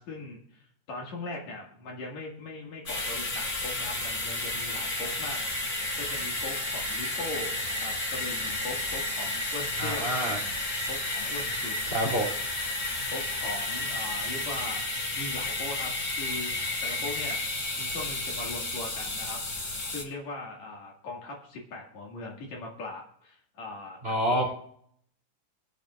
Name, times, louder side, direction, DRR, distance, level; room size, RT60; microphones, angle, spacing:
voice 1, 0.0-10.1 10.9-11.8 12.1-12.3 13.1-14.8 15.2-17.4 17.8-24.4, left 2 dB, 60° left, -2 dB, 3.1 m, -40 dB
sound 1, 2.9-20.0, left 2 dB, 30° left, 3.6 m, -32 dB
voice 2, 9.8-10.4 11.9-12.3 24.0-24.5, equal, 20° right, -2 dB, 3.1 m, -27 dB
25.5 x 9.5 x 2.4 m, 0.65 s
omnidirectional pair, 3.7 m